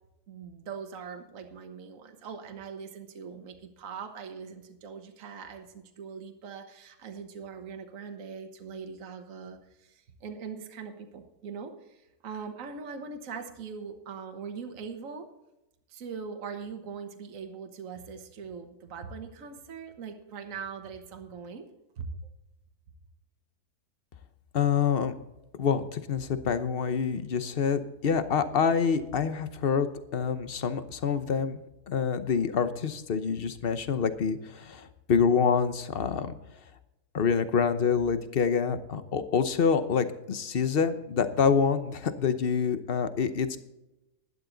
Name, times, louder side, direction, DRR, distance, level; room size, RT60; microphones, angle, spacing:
voice 1, 0.3-15.3 15.9-21.6 22.0-22.1, right 5 dB, 55° right, 5 dB, 1.6 m, -41 dB
voice 2, 24.5-25.1 25.6-29.9 30.1-31.6 31.9-36.4 37.1-43.6, left 6 dB, 45° left, 11 dB, 0.9 m, -26 dB
12.0 x 11.0 x 4.0 m, 0.94 s
omnidirectional pair, 1.7 m